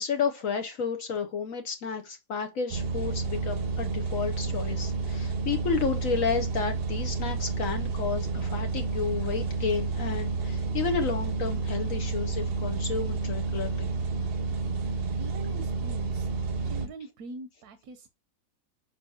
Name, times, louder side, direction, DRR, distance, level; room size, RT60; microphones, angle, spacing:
voice 1, 0.0-13.9, left 6 dB, 70° left, 1.2 m, -31 dB
sound 1, 2.7-16.9, right 4 dB, 50° right, 0.8 m, -30 dB
voice 2, 14.9-16.3 16.6-18.1, right 3 dB, 85° right, 1.3 m, -44 dB
7.8 x 4.8 x 2.7 m
omnidirectional pair, 1.5 m